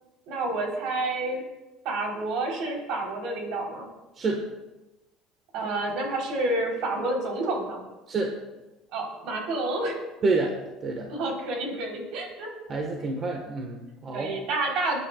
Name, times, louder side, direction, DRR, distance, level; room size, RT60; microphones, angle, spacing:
voice 1, 0.3-1.4 1.8-3.9 5.5-7.8 8.9-10.0 11.1-12.5 14.1-15.0, right 2 dB, 65° right, 0 dB, 3.6 m, -29 dB
voice 2, 10.2-10.5 10.8-11.1 12.7-14.3, right 3 dB, 35° right, 1 dB, 1.4 m, -28 dB
26.5 x 9.8 x 2.4 m, 1.1 s
cardioid pair, 145°, 0 cm